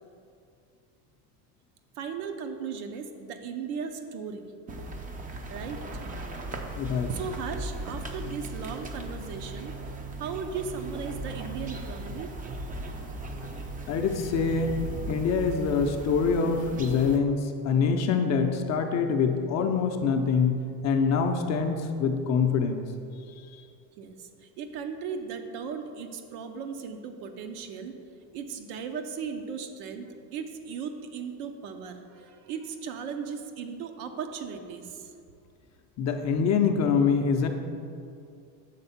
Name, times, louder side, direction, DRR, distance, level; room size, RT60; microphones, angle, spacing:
voice 1, 2.0-4.4 5.5-5.8 7.1-9.8 10.2-12.4 24.0-28.0 28.3-35.1, right 6 dB, 70° right, 6 dB, 0.8 m, -37 dB
sound 1, 4.7-17.2, right 2 dB, 20° right, 0.4 m, -37 dB
voice 2, 6.8-7.1 13.9-14.8 15.1-20.6 20.8-22.8 36.0-37.5, left 5 dB, 35° left, 5 dB, 0.5 m, -25 dB
6.7 x 3.5 x 5.7 m, 2.4 s
supercardioid pair, 110°, 46 cm